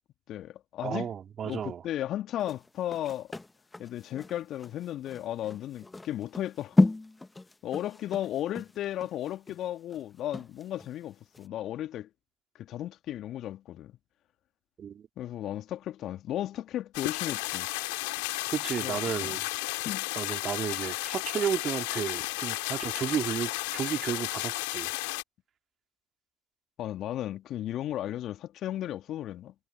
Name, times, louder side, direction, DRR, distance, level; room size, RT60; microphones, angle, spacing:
voice 1, 0.3-1.1 1.4-3.3 3.8-6.9 7.6-12.1 12.6-14.0 15.2-17.7 18.8-19.4 19.8-20.1 26.8-29.5, left 12 dB, 60° left, 2.6 m, -35 dB
voice 2, 0.8-1.8 14.8-15.1 18.5-19.4 20.2-24.9, right 8 dB, 45° right, 2.7 m, -33 dB
sound 1, 2.4-11.0 11.3-11.5, left 2 dB, 15° left, 1.5 m, -32 dB
sound 2, 16.9-25.2, left 28 dB, 75° left, 3.2 m, -33 dB
figure-of-eight pair, 55°, 0 cm